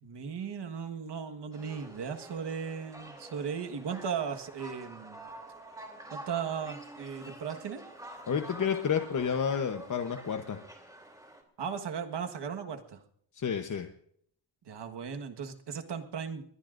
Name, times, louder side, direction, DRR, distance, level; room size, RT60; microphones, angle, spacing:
voice 1, 0.0-5.3 6.1-7.8 11.6-13.0 14.6-16.4, right 7 dB, 75° right, 6 dB, 1.6 m, -37 dB
sound 1, 1.5-11.4, right 1 dB, 10° right, 3.1 m, -48 dB
voice 2, 8.3-10.6 13.3-13.9, left 7 dB, 45° left, 5 dB, 1.0 m, -30 dB
21.0 x 21.0 x 2.6 m, 0.67 s
wide cardioid pair, 135°, 41 cm